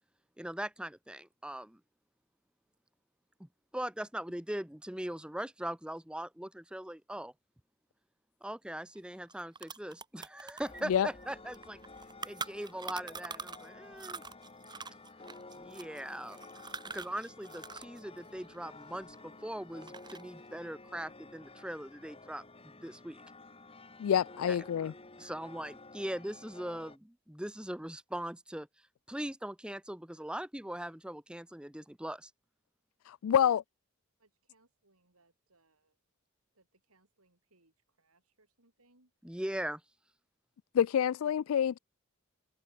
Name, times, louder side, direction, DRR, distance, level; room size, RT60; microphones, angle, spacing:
voice 1, 0.4-1.8 3.4-7.3 8.4-11.8 12.3-14.2 15.5-16.4 16.9-23.2 25.2-28.7 29.1-32.3 39.2-39.8, right 1 dB, 5° right, 0.8 m, -40 dB
sound 1, 9.0-9.1 9.3-13.7 14.0-18.0 18.2-19.4 19.8-20.4, right 4 dB, 20° right, 2.2 m, -44 dB
sound 2, 10.6-27.0, left 3 dB, 25° left, 2.7 m, -52 dB
voice 2, 24.0-24.9 33.1-33.6 40.7-41.8, left 9 dB, 75° left, 0.3 m, -27 dB
voice 3, 34.2-36.0 36.5-39.1, right 2 dB, 90° right, 6.4 m, -69 dB
head